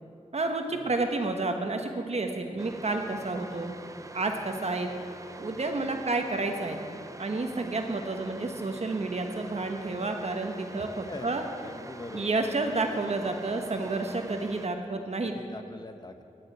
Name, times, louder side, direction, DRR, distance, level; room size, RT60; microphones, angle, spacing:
voice 1, 0.3-3.8 4.1-4.9 5.4-6.8 7.2-11.4 12.1-15.3, right 3 dB, 55° right, 4 dB, 1.2 m, -30 dB
sound 1, 2.6-14.7, right 2 dB, 25° right, 0.5 m, -45 dB
voice 2, 10.8-12.3 15.2-16.2, left 2 dB, 30° left, 7 dB, 0.9 m, -43 dB
10.5 x 9.4 x 8.0 m, 2.6 s
wide cardioid pair, 95°, 13 cm